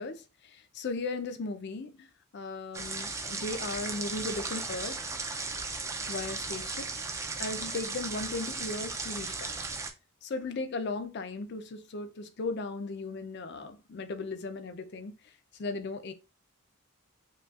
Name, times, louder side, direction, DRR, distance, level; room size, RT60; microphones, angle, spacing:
voice 1, 0.0-2.1 2.3-5.1 6.1-6.8 7.4-9.6 10.2-16.1, left 3 dB, 55° left, 0.5 m, -37 dB
sound 1, 2.7-9.9, right 3 dB, 15° right, 0.4 m, -36 dB
5.0 x 2.3 x 2.4 m
head